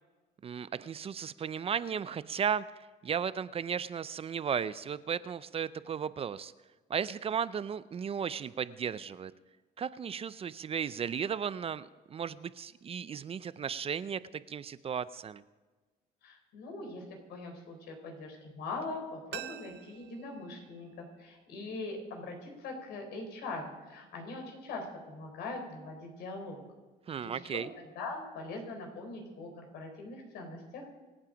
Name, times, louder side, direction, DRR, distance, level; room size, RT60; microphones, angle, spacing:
voice 1, 0.4-2.6 3.0-6.5 6.9-9.3 9.8-15.4 27.1-27.7, right 7 dB, 35° right, 16 dB, 0.5 m, -35 dB
voice 2, 16.2-26.6 27.2-31.0, left 2 dB, 80° left, 3 dB, 4.4 m, -42 dB
sound 1, 19.3-22.1 22.4-22.5, right 13 dB, 80° right, 0.7 m, -48 dB
25.5 x 8.8 x 5.1 m, 1.3 s
cardioid pair, 110°, 17 cm